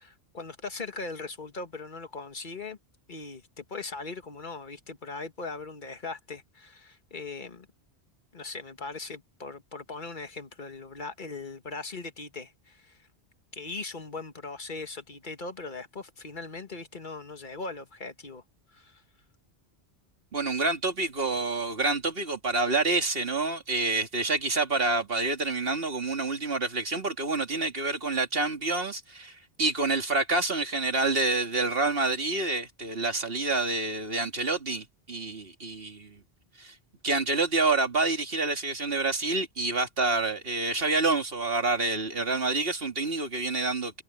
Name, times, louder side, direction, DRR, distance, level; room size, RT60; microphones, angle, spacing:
voice 1, 0.0-2.8 3.1-7.7 8.3-13.0 13.5-18.4 18.7-19.0, left 3 dB, 45° left, 1.9 m, -39 dB
voice 2, 20.3-36.2 36.6-36.7 37.0-44.0, right 3 dB, 60° right, 2.6 m, -28 dB
omnidirectional pair, 1.1 m